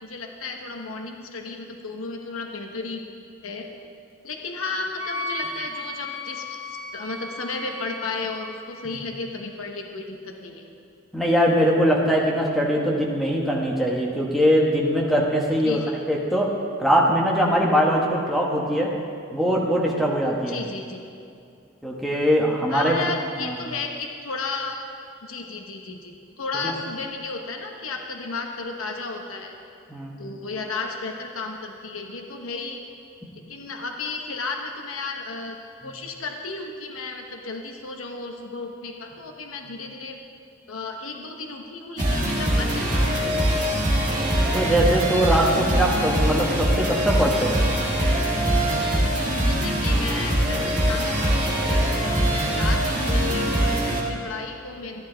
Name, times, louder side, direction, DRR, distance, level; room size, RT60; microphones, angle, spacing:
voice 1, 0.0-3.0 3.4-3.7 4.2-6.4 6.9-10.6 15.6-15.9 20.5-21.0 22.7-24.8 25.2-29.5 30.2-32.8 33.5-35.6 35.8-40.2 40.7-43.5 49.5-55.0, left 3 dB, 85° left, 3 dB, 1.0 m, -33 dB
Wind instrument woodwind instrument, 5.0-8.6, left 1 dB, 25° left, 1.3 m, -35 dB
voice 2, 11.1-15.8 16.1-16.5 16.8-18.9 19.3-20.6 21.8-22.9 23.4-23.6 26.6-26.7 29.9-30.2 44.5-47.6, equal, ahead, -3 dB, 1.1 m, -22 dB
sound 1, 42.0-54.0, right 1 dB, 35° right, 1.9 m, -22 dB
13.5 x 10.5 x 3.9 m, 2.5 s
head